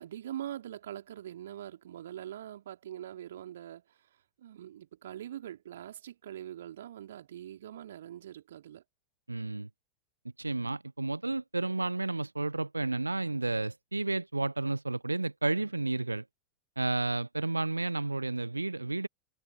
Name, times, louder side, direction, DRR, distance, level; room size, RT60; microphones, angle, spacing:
voice 1, 0.0-4.0 4.4-8.8, right 11 dB, 60° right, 3.6 m, -43 dB
voice 2, 9.3-9.7 10.4-16.2 16.8-19.1, right 2 dB, 85° right, 1.2 m, -31 dB
figure-of-eight pair, 90°, 0 cm